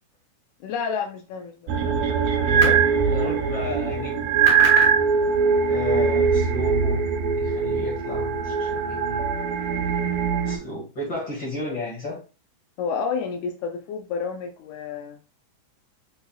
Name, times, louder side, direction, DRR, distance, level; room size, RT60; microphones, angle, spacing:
voice 1, 0.6-1.7 12.8-15.2, left 6 dB, 85° left, 2.2 m, -30 dB
sound 1, 1.7-10.6, right 4 dB, 80° right, 2.0 m, -24 dB
voice 2, 2.4-4.1 5.7-7.0 7.3-9.2 10.4-12.2, left 2 dB, 40° left, 2.3 m, -33 dB
sound 2, 2.4-2.9 4.2-5.0, right 8 dB, 45° right, 1.6 m, -17 dB
5.7 x 4.0 x 2.3 m
omnidirectional pair, 3.4 m